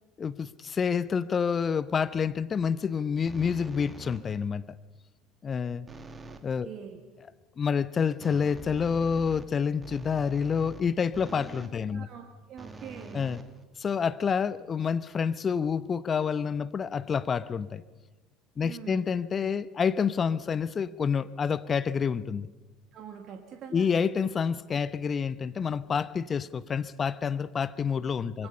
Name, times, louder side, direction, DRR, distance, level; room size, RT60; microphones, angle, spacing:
voice 1, 0.2-4.6 5.4-5.9 6.4-6.7 7.6-12.1 13.1-13.4 13.8-17.8 18.6-22.5 23.7-28.5, left 6 dB, 30° left, 16 dB, 0.8 m, -28 dB
sound 1, 3.3-4.5 5.9-6.5 8.2-11.8 12.6-14.1, right 2 dB, 20° right, 1.8 m, -45 dB
voice 2, 6.6-7.0 11.9-13.2 18.6-19.1 22.9-23.9 28.4-28.5, right 8 dB, 45° right, 4 dB, 1.8 m, -44 dB
25.5 x 22.5 x 5.5 m, 1.2 s
figure-of-eight pair, 65°, 0 cm